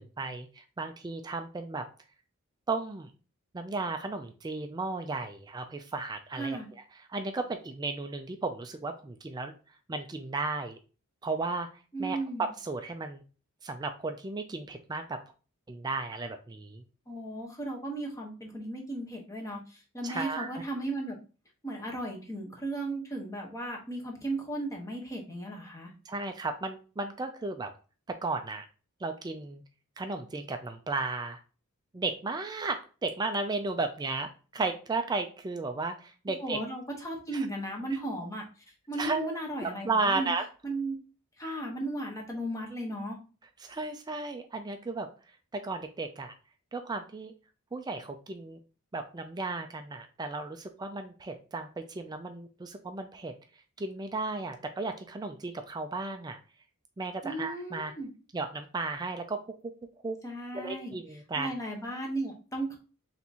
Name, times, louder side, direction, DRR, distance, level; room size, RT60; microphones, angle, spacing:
voice 1, 0.0-1.8 2.7-3.1 3.5-6.6 7.1-9.5 9.9-10.8 11.2-11.7 12.0-13.2 13.6-15.2 15.7-16.8 20.0-20.6 26.1-27.7 28.1-28.6 29.0-29.6 30.0-31.4 31.9-36.6 37.3-37.5 39.0-40.5 43.6-45.1 45.5-46.3 46.7-47.3 47.7-48.6 48.9-53.3 53.8-56.4 57.0-57.9 58.3-59.4 60.0-60.2 60.5-61.5, right 3 dB, 20° right, 6 dB, 0.3 m, -34 dB
voice 2, 6.4-6.7 11.9-12.5 17.1-21.2 21.6-25.9 36.4-38.4 38.9-40.3 40.6-41.0 41.4-43.2 57.2-58.1 60.2-60.9 61.4-62.8, right 1 dB, 15° left, 0 dB, 0.9 m, -35 dB
3.5 x 2.9 x 4.0 m, 0.35 s
head